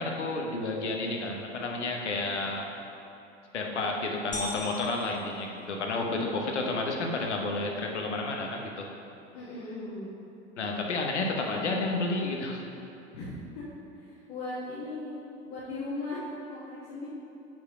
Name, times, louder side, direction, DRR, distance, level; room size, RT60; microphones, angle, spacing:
voice 1, 0.0-2.7 3.5-8.9 10.6-12.6, left 2 dB, 80° left, 1 dB, 0.9 m, -31 dB
sound 1, 4.3-6.3, left 2 dB, 20° left, 1.1 m, -39 dB
voice 2, 5.9-6.2 6.5-6.8 9.3-10.1 13.1-13.7 13.9-17.1, left 2 dB, 50° left, -9 dB, 1.5 m, -38 dB
5.8 x 4.9 x 4.8 m, 2.9 s
figure-of-eight pair, 85°, 34 cm